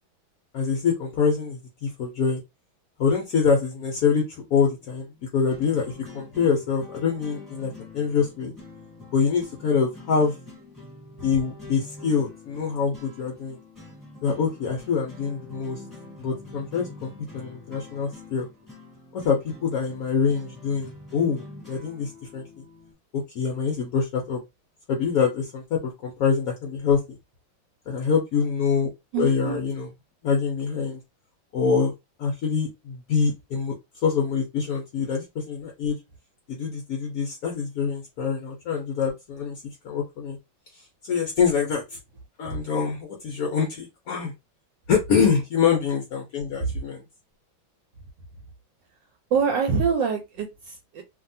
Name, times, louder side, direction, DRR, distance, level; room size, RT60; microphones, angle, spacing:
voice 1, 0.5-2.4 3.0-5.1 5.3-8.5 9.1-10.4 11.2-13.6 14.2-15.8 16.2-18.5 19.1-22.4 23.1-24.4 24.9-27.2 27.9-28.9 29.2-29.9 30.2-31.0 31.5-31.9 32.2-33.7 34.0-36.0 36.5-40.4 41.0-42.0 42.4-44.3 44.9-47.0, left 6 dB, 75° left, 1 dB, 0.8 m, -25 dB
sound 1, 4.1-22.9, left 2 dB, ahead, 1.0 m, -45 dB
voice 2, 29.1-29.6 42.5-42.6 46.6-46.8 49.3-51.0, right 6 dB, 70° right, 3 dB, 1.2 m, -25 dB
2.8 x 2.6 x 2.6 m, 0.22 s
omnidirectional pair, 2.2 m